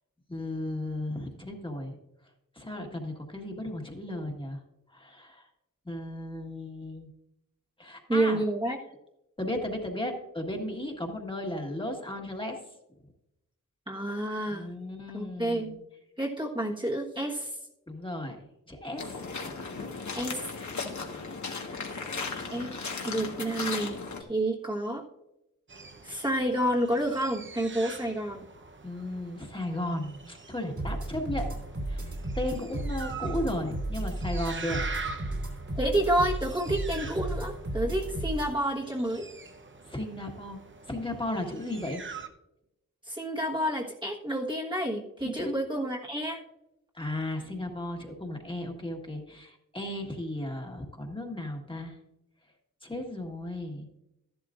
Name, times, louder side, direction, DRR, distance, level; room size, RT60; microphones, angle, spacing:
voice 1, 0.3-1.9 2.5-4.6 4.9-5.4 5.8-7.1 7.8-8.4 9.4-12.6 14.5-15.8 17.9-18.4 18.7-19.6 28.8-31.6 31.9-34.8 39.9-40.6 40.9-42.0 45.4-45.6 46.9-52.0 52.8-53.9, left 1 dB, 15° left, 1 dB, 1.6 m, -35 dB
voice 2, 8.1-8.8 13.9-14.7 15.1-15.7 16.2-17.6 20.1-20.5 22.5-22.7 23.0-25.0 26.0-28.4 35.7-39.3 43.0-46.4, right 1 dB, 15° right, -3 dB, 1.3 m, -29 dB
sound 1, 19.0-24.2, left 4 dB, 65° left, 1.5 m, -36 dB
sound 2, 25.7-42.3, right 4 dB, 35° right, 0.9 m, -44 dB
sound 3, 30.8-38.5, right 1 dB, 65° right, 3.0 m, -34 dB
13.0 x 11.5 x 2.5 m, 0.88 s
wide cardioid pair, 90°, 32 cm